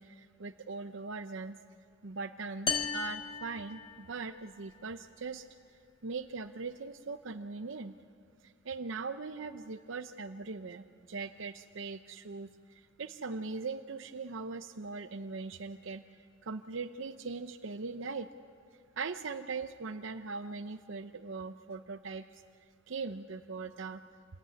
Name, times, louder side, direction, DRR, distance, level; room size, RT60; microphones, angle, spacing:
voice 1, 0.0-1.6 2.0-5.5 6.0-8.0 8.4-16.0 16.4-18.3 19.0-22.4 22.9-24.0, right 4 dB, 75° right, 8 dB, 0.7 m, -40 dB
sound 1, 2.7-4.4, left 6 dB, 25° left, 0.8 m, -36 dB
26.5 x 20.0 x 9.6 m, 2.3 s
head